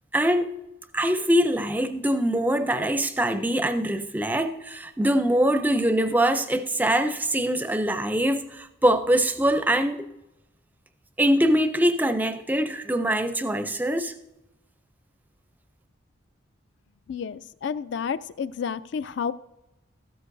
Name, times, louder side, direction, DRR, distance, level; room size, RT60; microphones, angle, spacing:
voice 1, 0.1-0.6 0.9-10.1 11.2-14.1, right 1 dB, 10° right, 0.4 m, -23 dB
voice 2, 17.1-19.3, left 6 dB, 55° left, 0.3 m, -30 dB
14.5 x 12.5 x 2.6 m
head